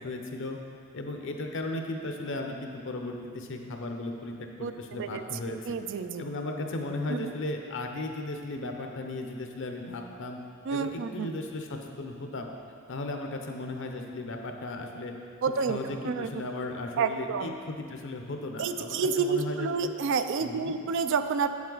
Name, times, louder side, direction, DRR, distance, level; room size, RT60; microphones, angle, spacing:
voice 1, 0.0-0.6 0.9-5.8 6.2-10.4 10.7-12.5 12.9-15.1 15.7-19.9 20.4-20.8, left 2 dB, 60° left, 3 dB, 0.8 m, -36 dB
voice 2, 4.6-5.2 5.7-6.3 7.1-7.3 10.7-11.3 15.4-15.8 16.0-16.3 17.0-17.5 18.6-21.5, right 5 dB, 60° right, 9 dB, 0.4 m, -29 dB
8.5 x 7.3 x 3.9 m, 2.4 s
head